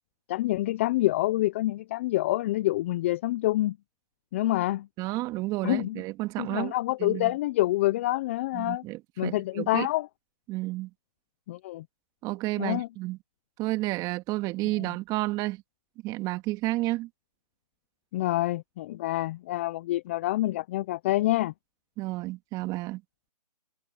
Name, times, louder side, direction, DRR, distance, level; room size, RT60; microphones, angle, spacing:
voice 1, 0.3-3.8 4.3-4.9 5.6-6.0 6.4-8.8 9.2-10.1 11.5-11.8 12.6-12.9 14.8-14.9 18.1-21.5, left 16 dB, 20° left, 0.5 m, -27 dB
voice 2, 5.0-6.7 7.0-7.3 8.5-9.9 10.5-10.9 12.2-13.2 13.6-15.6 16.0-17.1 22.0-23.0, right 19 dB, 20° right, 2.4 m, -31 dB
hypercardioid pair, 150°, 21 cm